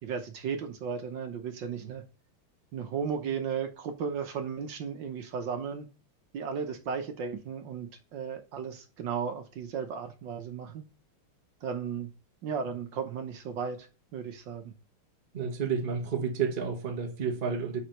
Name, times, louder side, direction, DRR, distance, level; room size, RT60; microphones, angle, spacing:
voice 1, 0.0-2.0 2.7-5.9 6.3-10.8 11.6-12.1 12.4-13.9 14.1-14.7, right 6 dB, 65° right, 1.5 m, -35 dB
voice 2, 15.3-17.8, right 6 dB, 30° right, 1.0 m, -30 dB
5.1 x 4.9 x 5.7 m
omnidirectional pair, 2.3 m